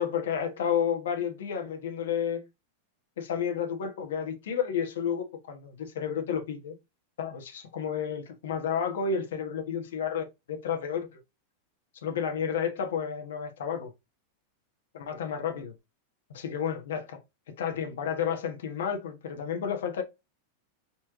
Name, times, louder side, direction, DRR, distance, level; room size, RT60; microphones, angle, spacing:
voice 1, 0.0-2.5 3.2-6.7 7.2-11.2 12.0-13.9 14.9-15.7 16.3-17.2 17.6-20.0, left 7 dB, 85° left, 1.2 m, -31 dB
4.2 x 3.1 x 3.7 m
supercardioid pair, 170°, 0 cm